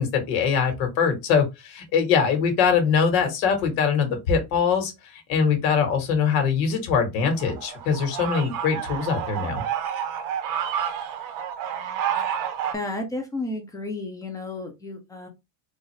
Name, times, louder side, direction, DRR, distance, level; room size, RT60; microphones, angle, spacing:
voice 1, 0.0-9.6, left 6 dB, 85° left, 1.7 m, -23 dB
sound 1, 7.4-12.7, right 9 dB, 40° right, 0.6 m, -29 dB
voice 2, 12.7-15.3, left 2 dB, 10° left, 0.4 m, -32 dB
3.9 x 2.5 x 3.1 m
cardioid pair, 155°, 49 cm